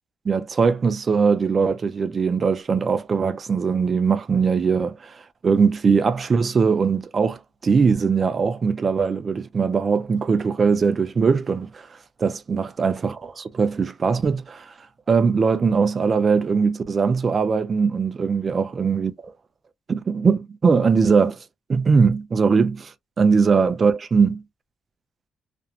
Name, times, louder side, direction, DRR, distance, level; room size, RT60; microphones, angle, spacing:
voice 1, 0.3-11.9 12.2-14.7 15.1-19.3 19.9-21.4 21.7-24.4, right 5 dB, 40° right, 0.5 m, -21 dB
2.5 x 2.1 x 2.7 m
cardioid pair, 90°, 0 cm